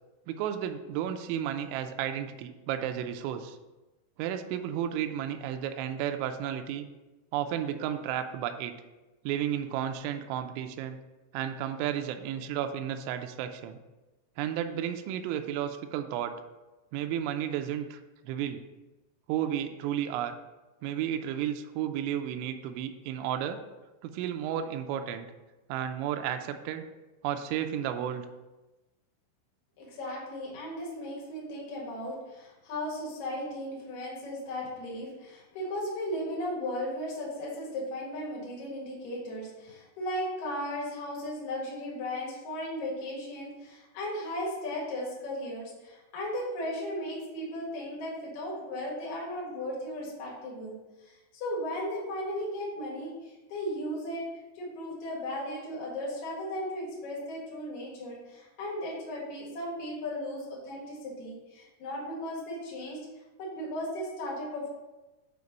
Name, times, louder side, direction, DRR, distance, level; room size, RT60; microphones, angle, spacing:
voice 1, 0.3-3.6 4.2-6.9 7.3-8.7 9.3-11.0 11.3-13.8 14.4-16.3 16.9-18.0 18.3-18.6 19.3-20.4 20.8-23.6 24.0-25.3 25.7-26.8 27.2-28.3, right 10 dB, 85° right, 6 dB, 2.7 m, -32 dB
voice 2, 29.8-54.3 54.5-63.0 63.4-64.7, left 1 dB, 55° left, -4 dB, 2.2 m, -36 dB
7.9 x 2.9 x 5.2 m, 1.1 s
omnidirectional pair, 5.7 m